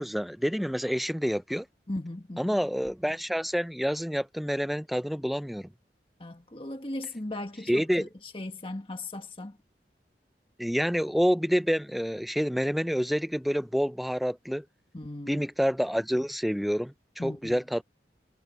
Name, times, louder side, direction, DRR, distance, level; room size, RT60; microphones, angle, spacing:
voice 1, 0.0-1.7 2.4-5.7 7.7-8.1 10.6-14.6 15.3-17.8, equal, ahead, 0.3 m, -28 dB
voice 2, 1.9-2.6 6.2-9.6 14.9-15.4 17.2-17.6, left 1 dB, 30° left, 1.5 m, -37 dB
head